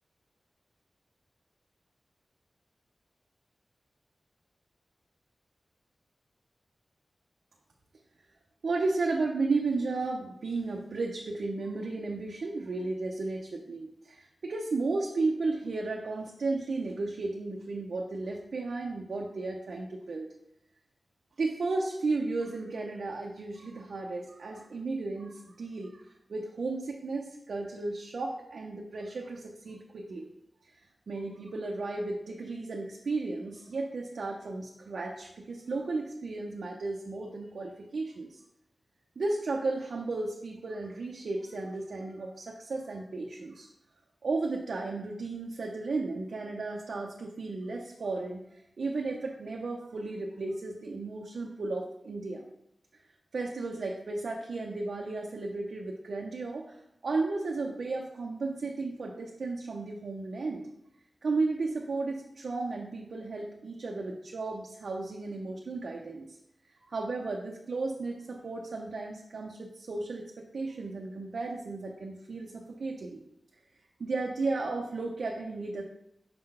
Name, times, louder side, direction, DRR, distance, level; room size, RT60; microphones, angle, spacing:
voice 1, 8.6-20.3 21.4-30.3 31.1-38.4 39.2-43.7 44.2-52.5 53.3-60.6 61.2-66.4 66.8-73.2 74.0-75.8, right 3 dB, 80° right, -1 dB, 0.7 m, -34 dB
5.9 x 3.9 x 5.5 m, 0.79 s
wide cardioid pair, 120°, 0 cm